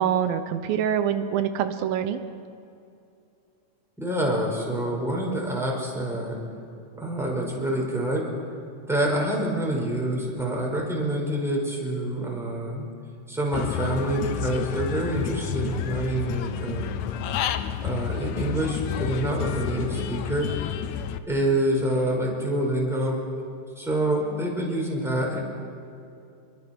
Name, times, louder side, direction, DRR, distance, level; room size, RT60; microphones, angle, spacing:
voice 1, 0.0-2.2, right 9 dB, 90° right, 9 dB, 2.8 m, -25 dB
voice 2, 4.0-6.4 7.0-8.3 8.9-12.9 13.3-17.1 17.8-20.5 21.3-23.2 23.8-25.4, right 1 dB, ahead, -3 dB, 5.4 m, -26 dB
Human voice / Bird, 13.5-21.2, left 10 dB, 70° left, 1.9 m, -30 dB
28.0 x 23.0 x 6.2 m, 2.5 s
omnidirectional pair, 4.0 m